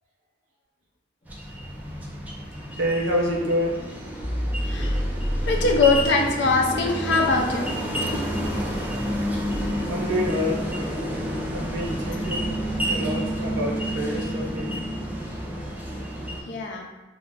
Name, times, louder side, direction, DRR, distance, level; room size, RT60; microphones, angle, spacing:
sound 1, 1.2-13.9, equal, 30° left, 0.9 m, -34 dB
sound 2, 1.3-16.4, equal, 10° right, 0.3 m, -30 dB
voice 1, 2.7-3.7 9.9-10.6 11.5-14.8, equal, 85° right, -2 dB, 0.7 m, -27 dB
voice 2, 4.6-5.0 5.5-7.8 8.3-8.8 9.5-9.8 16.5-16.9, left 3 dB, 65° left, 1 dB, 0.4 m, -23 dB
2.3 x 2.0 x 3.3 m, 1.2 s
head